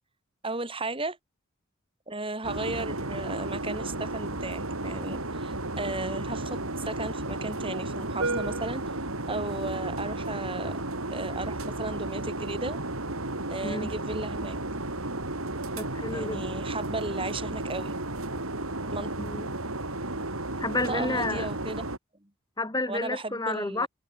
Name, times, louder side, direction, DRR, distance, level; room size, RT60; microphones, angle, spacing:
voice 1, 0.4-1.2 2.1-8.8 9.3-10.8 11.1-12.8 13.5-14.6 16.1-17.9 18.8-19.1 20.9-21.8 22.2-22.3 22.9-23.9, right 2 dB, 25° right, 3.0 m, -35 dB
sound 1, 2.4-22.0, right 2 dB, 70° right, 4.5 m, -33 dB
voice 2, 15.8-16.4 19.2-19.5 20.6-21.5 22.6-23.9, left 2 dB, 15° left, 1.6 m, -30 dB
head